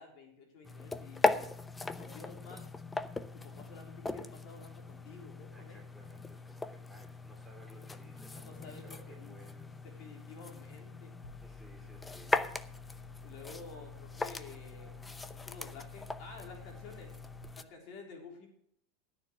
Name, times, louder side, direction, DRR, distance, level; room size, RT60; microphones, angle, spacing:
voice 1, 0.0-1.5 2.0-2.7 3.3-5.8 8.4-9.5 9.8-11.1 13.2-14.9 15.3-17.1 17.5-18.5, left 4 dB, 60° left, 1 dB, 3.6 m, -51 dB
sound 1, 0.6-17.6, left 3 dB, 15° left, 0.7 m, -39 dB
voice 2, 5.5-9.9 11.4-13.2, right 1 dB, 5° right, 1 dB, 3.1 m, -58 dB
sound 2, 11.2-17.4, left 6 dB, 90° left, 2.5 m, -53 dB
12.0 x 7.3 x 6.4 m, 0.69 s
hypercardioid pair, 100°, 0 cm